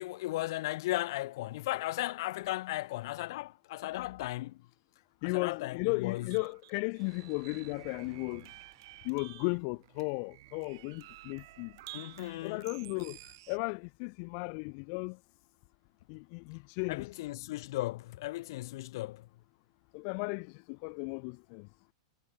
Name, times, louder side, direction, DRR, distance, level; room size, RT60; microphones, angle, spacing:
voice 1, 0.0-4.6 5.2-6.3 11.9-12.7 16.9-19.3, left 17 dB, 55° left, 1.5 m, -36 dB
voice 2, 5.2-8.4 9.1-11.7 12.4-13.2 13.5-15.2 16.1-17.1 19.9-20.5 20.8-21.6, left 40 dB or more, 40° left, 0.7 m, -35 dB
sound 1, 6.1-13.6, right 18 dB, 55° right, 3.8 m, -52 dB
sound 2, 7.0-11.7, right 4 dB, 10° right, 4.9 m, -66 dB
supercardioid pair, 155°, 3 cm